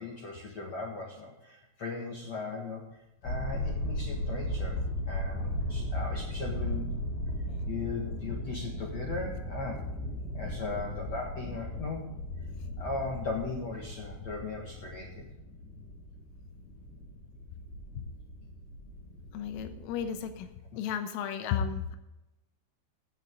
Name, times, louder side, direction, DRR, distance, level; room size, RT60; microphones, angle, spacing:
voice 1, 0.0-2.8 3.2-4.8 5.1-6.9 7.7-9.8 10.3-12.0 12.8-15.3 21.4-21.5, left 3 dB, 65° left, -1 dB, 1.6 m, -38 dB
sound 1, 3.2-20.4, left 1 dB, 50° left, 6.0 m, -37 dB
voice 2, 19.3-20.5 20.8-22.0, left 8 dB, 90° left, 7 dB, 3.6 m, -33 dB
16.5 x 9.0 x 3.7 m, 0.95 s
omnidirectional pair, 5.8 m